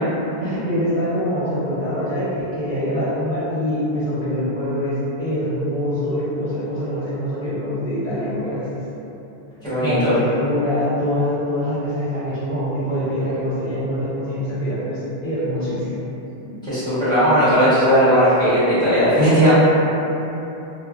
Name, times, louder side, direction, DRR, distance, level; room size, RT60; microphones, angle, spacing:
voice 1, 0.4-8.8 9.8-16.0, equal, 45° right, -17 dB, 1.3 m, -24 dB
voice 2, 9.6-10.1 16.6-19.5, equal, 5° left, -16 dB, 1.4 m, -17 dB
2.8 x 2.6 x 2.6 m, 2.9 s
omnidirectional pair, 1.1 m